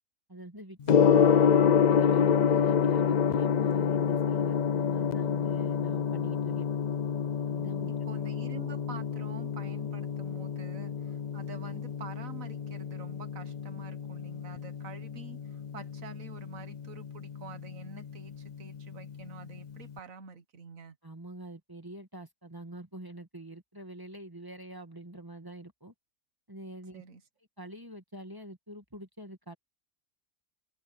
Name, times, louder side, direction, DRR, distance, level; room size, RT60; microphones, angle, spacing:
voice 1, 0.3-1.3 1.9-6.7 7.5-8.0 21.0-25.9 26.5-27.0 27.6-29.5, right 1 dB, 15° right, 1.7 m, -45 dB
Gong, 0.8-19.9, left 7 dB, 65° left, 0.4 m, -28 dB
voice 2, 7.9-21.0 26.9-27.2, right 4 dB, 75° right, 1.8 m, -47 dB
open air
omnidirectional pair, 1.4 m